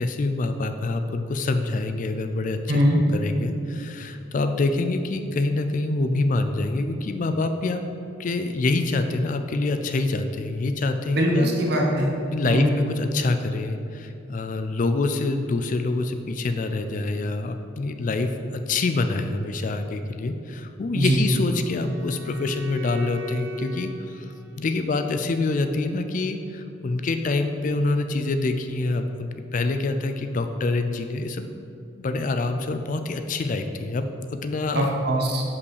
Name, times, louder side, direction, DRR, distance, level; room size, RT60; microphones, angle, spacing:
voice 1, 0.0-7.8 8.2-11.5 12.3-31.5 32.0-34.1 34.4-34.9, left 2 dB, 40° left, 7 dB, 0.4 m, -26 dB
voice 2, 2.7-3.0 11.1-12.1 12.4-12.6 20.9-21.2 34.7-35.4, equal, 55° right, 0 dB, 1.2 m, -21 dB
Wind instrument woodwind instrument, 21.0-25.1, left 2 dB, 80° right, 1.1 m, -38 dB
5.5 x 5.3 x 6.4 m, 2.7 s
head